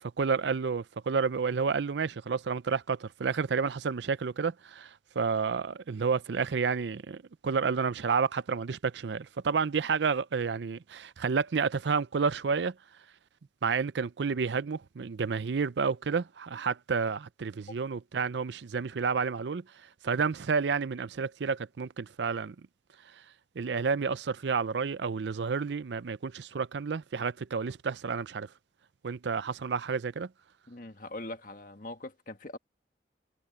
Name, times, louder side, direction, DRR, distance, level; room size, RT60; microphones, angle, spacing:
voice 1, 0.0-12.7 13.6-19.6 20.0-22.6 23.6-28.5 29.0-30.3, right 5 dB, 75° right, 0.5 m, -30 dB
voice 2, 30.7-32.6, left 2 dB, 50° left, 1.6 m, -42 dB
head